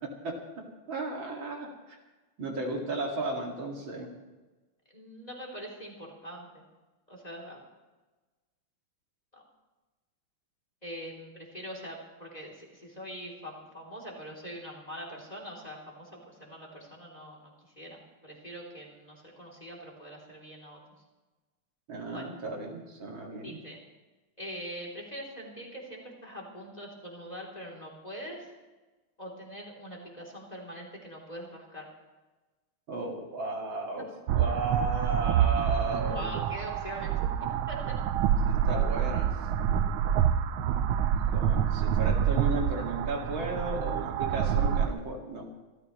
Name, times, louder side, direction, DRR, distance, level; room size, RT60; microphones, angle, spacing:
voice 1, 0.0-2.0 2.4-4.1 21.9-23.6 32.9-34.0 34.3-36.3 38.4-39.3 41.3-45.4, right 2 dB, 65° right, 0 dB, 2.9 m, -34 dB
voice 2, 4.9-6.6 7.1-7.6 9.3-9.4 10.8-20.8 22.1-22.3 23.4-23.8 24.4-28.5 29.2-31.9 36.1-38.3, equal, 20° left, -1 dB, 3.1 m, -43 dB
sound 1, 34.3-44.9, right 9 dB, 90° right, 1.5 m, -27 dB
26.0 x 13.5 x 3.1 m, 1.2 s
omnidirectional pair, 2.3 m